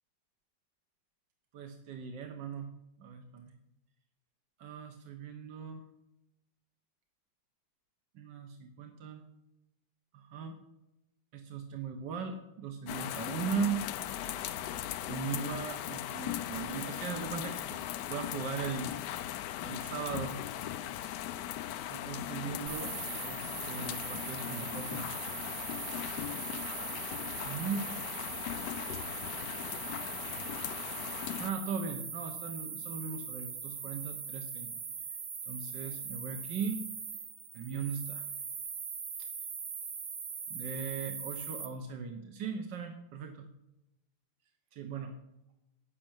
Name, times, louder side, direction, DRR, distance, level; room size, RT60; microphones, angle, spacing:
voice 1, 1.5-2.7 3.0-3.5 4.6-5.8 8.1-9.2 10.1-10.5 11.3-13.8 15.1-18.9 19.6-20.4 21.9-22.9 23.2-25.1 27.4-27.9 31.4-34.7 35.5-36.8 37.5-38.3 40.5-43.5 44.7-45.1, right 6 dB, 90° right, 5 dB, 1.8 m, -38 dB
sound 1, 12.9-31.5, left 12 dB, 75° left, 1.2 m, -39 dB
sound 2, 22.7-41.7, right 6 dB, 55° right, 1.6 m, -41 dB
12.0 x 6.6 x 8.9 m, 0.91 s
omnidirectional pair, 1.9 m